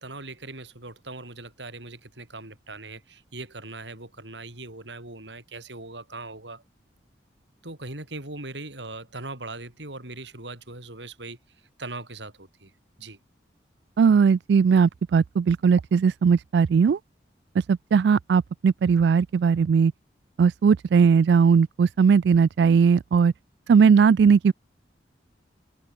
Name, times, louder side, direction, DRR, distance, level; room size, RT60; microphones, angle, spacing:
voice 1, 0.0-6.6 7.6-11.4 11.8-12.7 13.0-13.2, right 2 dB, 85° right, 6.2 m, -40 dB
voice 2, 14.0-17.0 17.6-19.9 20.4-23.3 23.7-24.5, right 6 dB, 70° right, 0.3 m, -19 dB
head